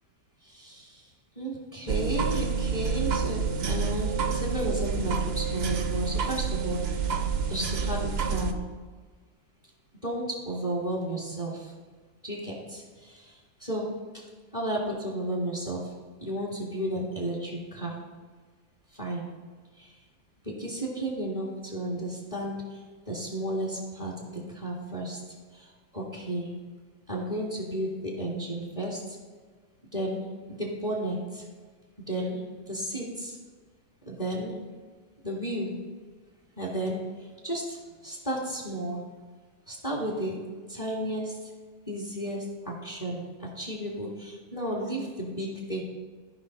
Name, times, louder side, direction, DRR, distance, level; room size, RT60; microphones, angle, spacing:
voice 1, 0.4-1.1 1.4-8.5 10.0-11.7 12.2-13.9 14.5-15.8 16.2-18.0 18.9-19.2 19.8-20.0 20.4-25.2 25.5-26.5 27.1-29.2 29.9-30.2 30.5-31.4 32.1-32.4 32.7-33.4 34.1-34.5 35.2-35.7 36.6-39.0 39.7-40.4 40.7-41.5 41.9-45.8, right 1 dB, 20° left, -3 dB, 1.8 m, -33 dB
sound 1, 1.9-8.5, right 5 dB, 55° right, 0.7 m, -28 dB
14.0 x 5.5 x 4.1 m, 1.5 s
omnidirectional pair, 1.8 m